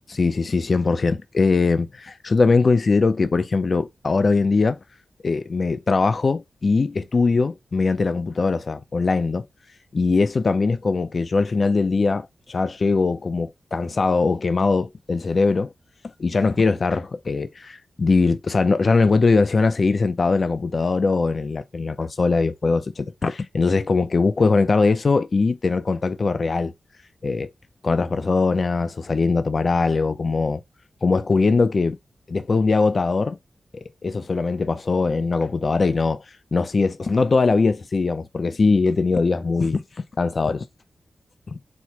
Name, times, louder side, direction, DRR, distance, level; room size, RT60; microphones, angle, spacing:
voice 1, 0.1-4.8 5.2-9.5 9.9-15.7 16.2-26.7 27.2-27.5 27.8-30.6 31.0-32.0 32.3-33.4 33.7-36.2 36.5-39.8 40.2-40.7 41.5-41.6, left 4 dB, 45° left, 0.4 m, -21 dB
4.3 x 2.1 x 4.5 m
wide cardioid pair, 135°, 0 cm